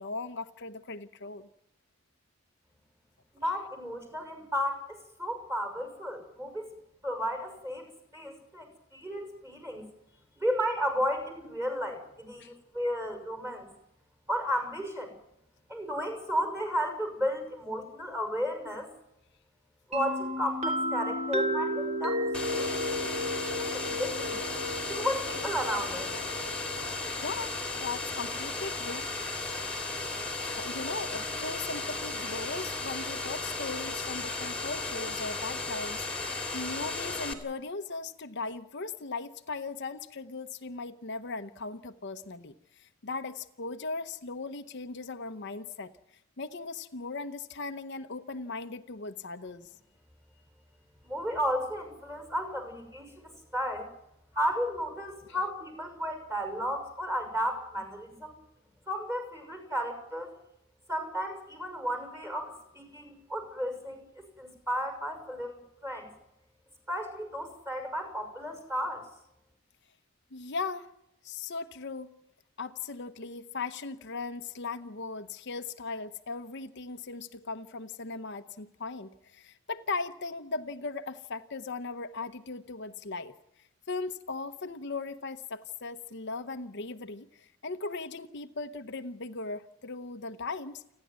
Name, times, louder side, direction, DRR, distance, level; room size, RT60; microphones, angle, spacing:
voice 1, 0.0-1.5 12.4-12.5 27.2-29.1 29.4-29.6 30.4-45.9 46.4-49.7 70.3-70.9 71.2-72.1 72.6-90.9, left 3 dB, 55° left, 8 dB, 0.9 m, -38 dB
voice 2, 3.4-6.7 7.0-7.8 8.1-9.9 10.4-13.7 14.3-15.1 15.7-18.9 19.9-22.2 22.5-24.4 24.9-26.1 51.0-53.9 54.3-58.4 58.9-60.3 60.9-65.5 65.8-66.1 66.9-69.1, equal, 15° right, 5 dB, 6.3 m, -33 dB
sound 1, 19.9-27.6, equal, 30° right, 3.7 m, -33 dB
sound 2, 22.3-37.3, left 3 dB, 5° left, 2.9 m, -35 dB
29.5 x 10.5 x 9.5 m, 0.81 s
head